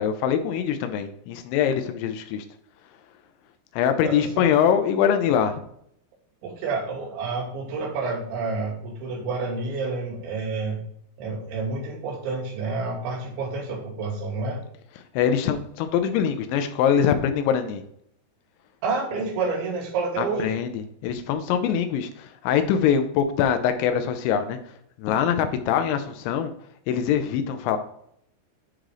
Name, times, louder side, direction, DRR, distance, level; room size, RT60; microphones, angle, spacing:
voice 1, 0.0-2.4 3.8-5.6 15.2-17.8 20.2-20.7 21.0-24.6 25.0-26.5 26.9-27.8, left 8 dB, 90° left, 7 dB, 3.1 m, -23 dB
voice 2, 4.0-4.5 6.4-10.8 11.2-14.6 18.8-20.6, right 4 dB, 80° right, -4 dB, 4.5 m, -29 dB
9.5 x 3.8 x 4.9 m, 0.70 s
omnidirectional pair, 5.2 m